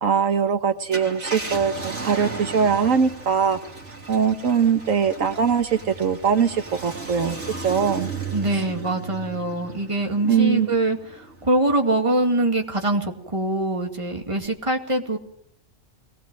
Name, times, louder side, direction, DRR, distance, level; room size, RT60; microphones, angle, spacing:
voice 1, 0.0-3.7 4.1-7.4 7.6-8.1 8.5-8.6 10.3-10.7, right 6 dB, 75° right, 7 dB, 1.6 m, -21 dB
Car, 0.8-11.6 12.1-12.2 14.2-14.5, right 3 dB, 60° right, 3.5 m, -35 dB
voice 2, 8.3-15.2, right 2 dB, 25° right, 3 dB, 2.4 m, -24 dB
22.0 x 19.5 x 7.6 m, 0.67 s
omnidirectional pair, 1.4 m